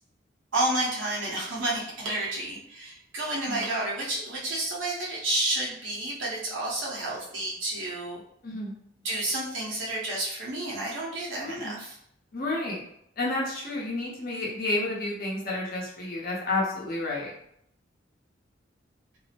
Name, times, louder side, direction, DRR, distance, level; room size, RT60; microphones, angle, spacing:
voice 1, 0.5-8.2 9.0-12.0, right 1 dB, 85° right, -5 dB, 0.9 m, -30 dB
voice 2, 8.4-8.7 11.4-11.8 12.3-12.8 13.2-17.3, left 2 dB, 50° left, -4 dB, 0.8 m, -30 dB
2.6 x 2.0 x 2.8 m, 0.72 s
head